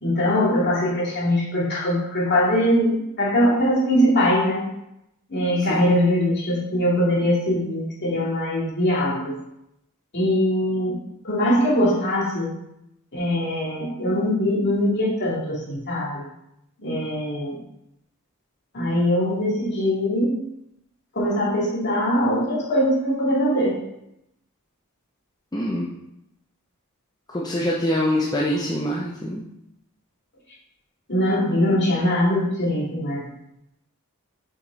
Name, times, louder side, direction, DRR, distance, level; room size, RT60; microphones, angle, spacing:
voice 1, 0.0-4.6 5.3-9.4 10.1-10.9 11.2-12.5 13.1-16.2 16.8-17.6 18.7-20.4 21.1-23.8 31.1-33.2, equal, 50° left, -5 dB, 2.4 m, -22 dB
voice 2, 25.5-25.9 27.3-29.4, left 1 dB, 20° left, -4 dB, 0.7 m, -24 dB
6.0 x 5.1 x 4.1 m, 0.83 s
head